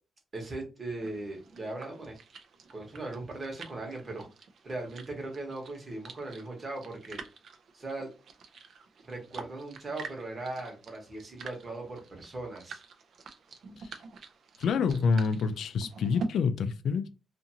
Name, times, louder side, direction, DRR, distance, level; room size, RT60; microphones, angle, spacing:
voice 1, 0.3-2.2 2.7-4.3 4.6-7.2 7.7-8.1 9.0-12.8, right 2 dB, 30° right, 1.1 m, -39 dB
sound 1, 1.0-16.3, right 4 dB, 60° right, 0.5 m, -46 dB
voice 2, 14.6-17.1, left 5 dB, 75° left, 0.3 m, -27 dB
2.6 x 2.5 x 2.7 m
cardioid pair, 120°, 0 cm